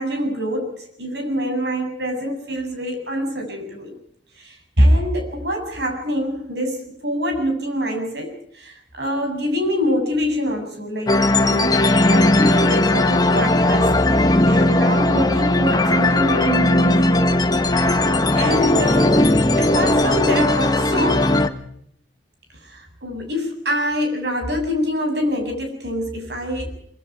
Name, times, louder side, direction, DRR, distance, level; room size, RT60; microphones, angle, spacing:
voice 1, 0.0-4.0 4.3-17.3 18.3-21.3 22.6-26.7, equal, 65° right, 4 dB, 7.6 m, -25 dB
sound 1, 11.1-21.5, left 1 dB, 20° left, 1.4 m, -17 dB
24.5 x 23.5 x 4.7 m, 0.70 s
head